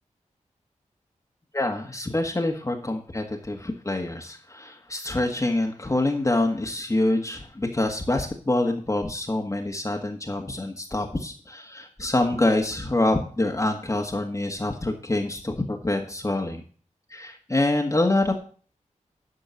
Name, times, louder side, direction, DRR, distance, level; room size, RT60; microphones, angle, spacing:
voice 1, 1.5-16.6 17.1-18.3, left 2 dB, 25° left, 2 dB, 1.6 m, -26 dB
12.0 x 4.5 x 7.0 m, 0.43 s
cardioid pair, 65°, 13 cm